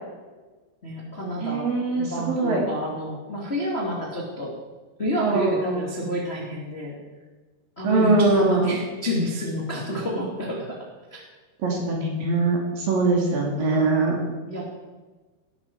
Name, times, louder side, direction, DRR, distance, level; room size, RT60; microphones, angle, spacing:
voice 1, 0.8-4.5 5.0-7.0 7.7-10.8 11.1-11.2 11.7-12.0 13.6-14.7, equal, 25° left, -3 dB, 1.5 m, -30 dB
voice 2, 1.4-2.6 5.2-6.1 7.8-8.8 11.6-14.2, right 3 dB, 50° right, -1 dB, 3.8 m, -22 dB
19.0 x 12.5 x 4.7 m, 1.3 s
omnidirectional pair, 5.7 m